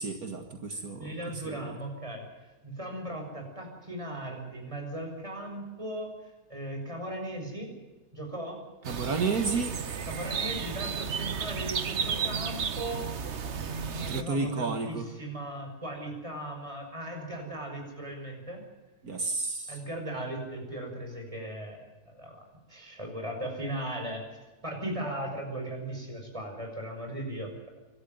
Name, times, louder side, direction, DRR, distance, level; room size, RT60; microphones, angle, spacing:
voice 1, 0.0-1.1 1.5-1.8 8.9-9.7 14.0-15.1 19.0-19.8, right 4 dB, 70° right, 5 dB, 2.2 m, -31 dB
voice 2, 0.7-2.3 2.6-6.1 6.5-7.7 8.1-8.6 10.1-13.1 13.6-18.6 19.7-21.8 22.1-22.4 22.7-24.2 24.6-27.7, right 1 dB, 20° right, 2 dB, 6.4 m, -37 dB
sound 1, 8.8-14.2, right 6 dB, 50° right, 1.3 m, -33 dB
26.0 x 13.0 x 9.3 m, 1.2 s
omnidirectional pair, 1.6 m